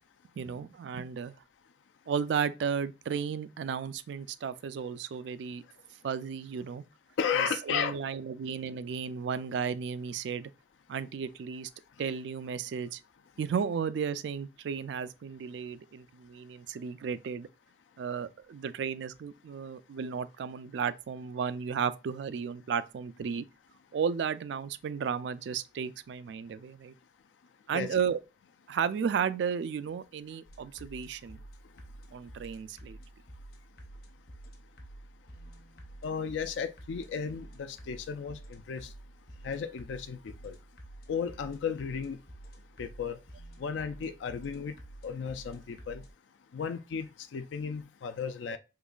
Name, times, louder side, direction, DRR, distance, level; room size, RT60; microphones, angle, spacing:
voice 1, 0.4-1.4 2.1-5.6 6.0-6.8 7.4-10.5 10.9-11.7 12.0-13.0 13.4-17.5 18.0-23.4 23.9-26.9 27.7-28.2 28.7-31.4 32.1-33.0, right 6 dB, 70° right, 0.3 m, -34 dB
voice 2, 7.2-7.9 27.7-27.9 36.0-38.9 39.4-40.6 41.1-42.2 42.8-43.2 43.6-44.7 45.0-46.0 46.5-48.6, left 6 dB, 80° left, 0.4 m, -34 dB
sound 1, 30.5-46.1, right 1 dB, 55° left, 0.9 m, -50 dB
3.9 x 2.9 x 2.3 m
head